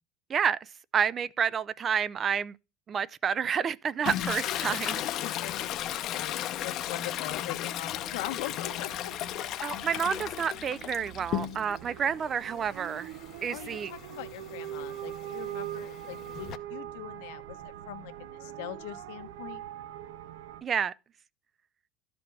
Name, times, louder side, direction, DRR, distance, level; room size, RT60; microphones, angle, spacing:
voice 1, 0.9-2.5 2.9-5.0 9.6-13.1 13.4-13.9 20.6-20.9, right 7 dB, 25° right, 0.4 m, -29 dB
Toilet flush, 4.0-11.9 12.3-16.6, left 12 dB, 45° left, 0.7 m, -35 dB
voice 2, 5.2-9.1 9.7-9.9 13.5-19.6, left 13 dB, 80° left, 1.0 m, -42 dB
sound 1, 7.9-20.6, right 12 dB, 85° right, 0.7 m, -43 dB
12.5 x 5.1 x 4.6 m
cardioid pair, 150°, 0 cm